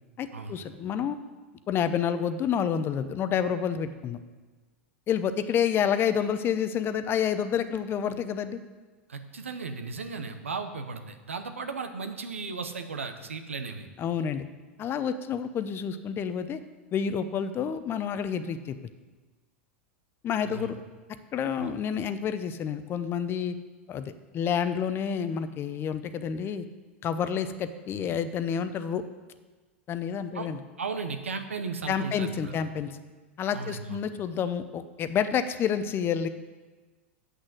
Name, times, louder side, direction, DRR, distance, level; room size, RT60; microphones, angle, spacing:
voice 1, 0.2-1.2 1.7-4.2 5.1-8.6 14.0-14.4 14.8-16.6 16.9-18.8 20.2-20.8 21.3-23.5 23.9-26.6 27.0-29.0 29.9-30.6 31.9-32.9 33.4-36.3, left 8 dB, 35° left, 11 dB, 0.7 m, -29 dB
voice 2, 9.1-13.9 20.4-20.7 21.6-21.7 30.3-30.5 30.8-32.6 33.5-34.0, right 4 dB, 90° right, 8 dB, 1.0 m, -36 dB
8.1 x 6.3 x 7.7 m, 1.3 s
hypercardioid pair, 95°, 7 cm